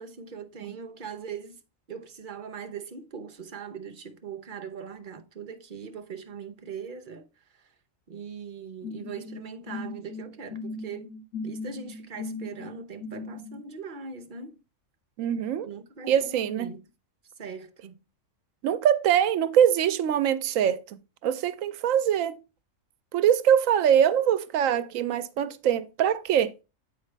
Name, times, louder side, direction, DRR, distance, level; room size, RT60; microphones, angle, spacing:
voice 1, 0.0-1.6 1.9-7.7 8.1-11.1 11.4-14.6 15.6-16.9 17.4-18.0, right 6 dB, 45° right, 0.8 m, -41 dB
sound 1, 8.8-13.6, left 3 dB, 85° left, 1.5 m, -38 dB
voice 2, 15.2-15.7 16.1-16.7 18.6-21.0 21.2-22.4 23.1-26.5, right 9 dB, 85° right, 1.0 m, -23 dB
8.1 x 5.0 x 3.3 m
omnidirectional pair, 1.3 m